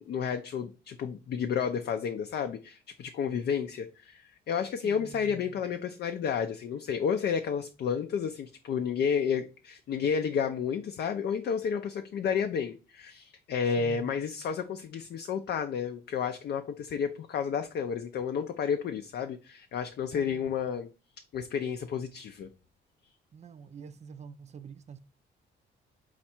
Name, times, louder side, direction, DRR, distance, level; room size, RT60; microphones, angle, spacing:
voice 1, 0.0-20.9 21.3-22.5, left 7 dB, 55° left, 0.4 m, -31 dB
voice 2, 4.8-5.6 13.8-14.1 20.1-20.5 23.3-25.0, right 6 dB, 35° right, 0.4 m, -47 dB
4.3 x 2.4 x 4.3 m
cardioid pair, 90°, 20 cm